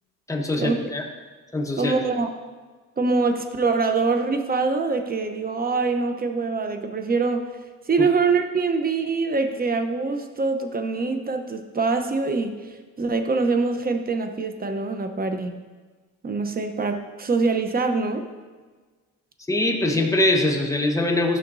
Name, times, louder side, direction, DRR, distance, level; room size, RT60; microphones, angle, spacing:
voice 1, 0.3-1.1 1.5-2.0 8.0-8.1 19.5-21.4, left 1 dB, 10° left, 3 dB, 1.0 m, -23 dB
voice 2, 1.8-2.3 3.0-7.4 7.9-12.5 13.0-15.5 16.2-18.2, right 4 dB, 30° right, 6 dB, 0.8 m, -24 dB
12.0 x 5.9 x 2.7 m, 1.4 s
cardioid pair, 90°, 30 cm